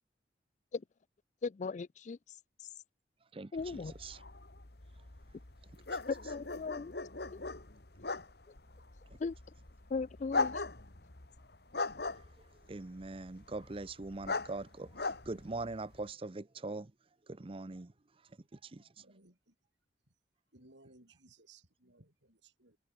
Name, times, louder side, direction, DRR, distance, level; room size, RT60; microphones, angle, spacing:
voice 1, 1.4-2.2 3.5-3.9 6.1-6.9 9.2-9.3 9.9-10.5, left 4 dB, 40° left, 0.4 m, -37 dB
voice 2, 3.3-4.2 5.9-6.0 12.2-12.3 12.7-16.9 17.3-17.9 18.5-19.0, right 2 dB, 30° right, 0.6 m, -42 dB
sound 1, 3.6-16.1, left 3 dB, 60° left, 2.0 m, -40 dB
voice 3, 18.8-19.5 20.5-22.8, right 2 dB, 85° right, 6.4 m, -62 dB
head